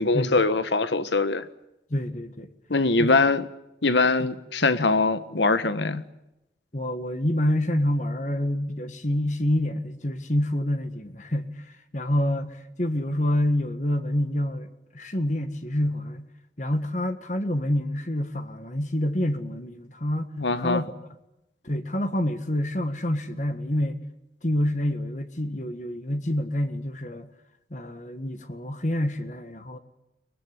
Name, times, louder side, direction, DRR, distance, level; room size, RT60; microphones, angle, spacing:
voice 1, 0.0-1.4 2.7-3.4 3.8-6.0 20.4-20.8, left 3 dB, 75° left, 1.5 m, -22 dB
voice 2, 1.9-2.5 3.0-3.2 6.7-16.3 16.6-20.3 20.6-20.9 21.6-24.0 24.4-27.3 27.7-29.8, left 1 dB, 40° left, 1.7 m, -27 dB
23.5 x 21.0 x 9.7 m
head